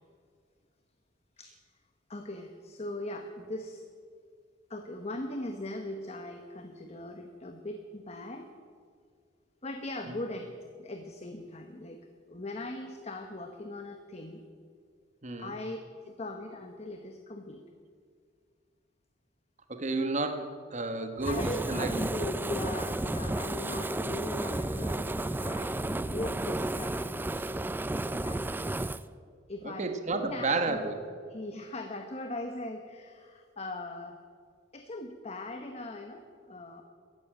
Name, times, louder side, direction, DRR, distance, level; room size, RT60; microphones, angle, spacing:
voice 1, 2.1-3.9 4.7-8.5 9.6-10.5 10.8-14.4 15.4-15.8 16.0-17.6 21.3-28.8 29.5-30.9 31.3-34.2 34.7-36.8, left 2 dB, 35° left, 5 dB, 0.9 m, -40 dB
voice 2, 15.2-15.5 19.7-21.4 21.7-21.9 29.6-31.0, right 3 dB, 40° right, 7 dB, 1.1 m, -31 dB
Fire, 21.2-29.0, right 2 dB, 10° right, 0.3 m, -32 dB
14.0 x 11.0 x 8.7 m, 2.1 s
head